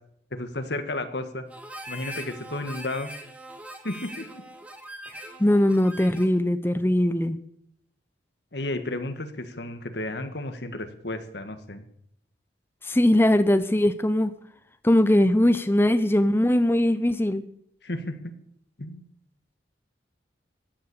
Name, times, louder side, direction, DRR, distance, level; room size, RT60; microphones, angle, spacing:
voice 1, 0.3-1.4 1.9-3.1 3.8-4.3 8.5-11.8 17.8-18.3 18.8-19.0, left 2 dB, 65° left, 8 dB, 1.7 m, -32 dB
Harmonica, 1.5-6.4, right 1 dB, 5° right, 1.5 m, -42 dB
voice 2, 5.4-7.4 12.8-14.3 14.8-17.4, left 1 dB, 10° left, 11 dB, 0.7 m, -20 dB
15.0 x 9.9 x 6.9 m, 0.69 s
head